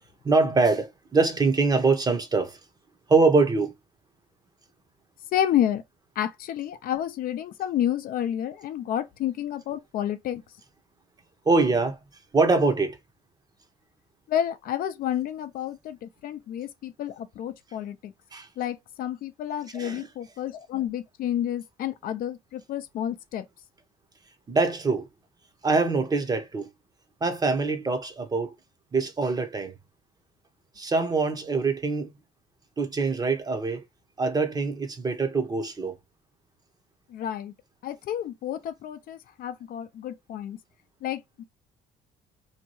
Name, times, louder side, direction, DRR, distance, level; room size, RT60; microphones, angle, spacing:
voice 1, 0.2-2.6 3.1-3.7 11.5-12.0 12.3-13.0 18.3-18.5 19.7-20.1 24.5-25.1 25.6-26.7 27.2-28.5 28.9-29.7 30.8-32.1 32.8-33.8 34.2-35.9, right 3 dB, 25° right, 0.7 m, -24 dB
voice 2, 5.3-5.8 6.2-10.4 14.3-18.1 18.6-23.4 37.1-37.5 37.8-40.6 41.0-41.4, left 10 dB, 60° left, 0.4 m, -30 dB
2.7 x 2.2 x 2.9 m
cardioid pair, 110°, 17 cm